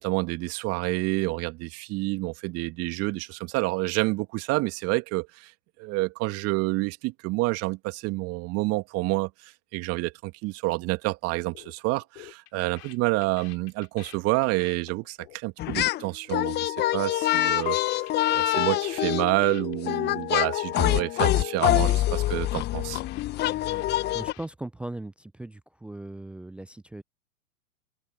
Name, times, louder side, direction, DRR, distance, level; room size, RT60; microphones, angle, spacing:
voice 1, 0.0-5.5 5.8-23.0, right 22 dB, 35° right, 2.5 m, -28 dB
sound 1, 11.5-11.7 12.0-16.6 16.8-19.8 20.0-20.2 20.5-20.8 21.1-21.4 21.7-24.5, left 22 dB, 45° left, 6.7 m, -50 dB
sound 2, 15.6-16.0 16.3-24.3, left 15 dB, 25° left, 1.2 m, -25 dB
voice 2, 24.1-27.0, right 2 dB, 5° right, 0.5 m, -38 dB
figure-of-eight pair, 110°, 43 cm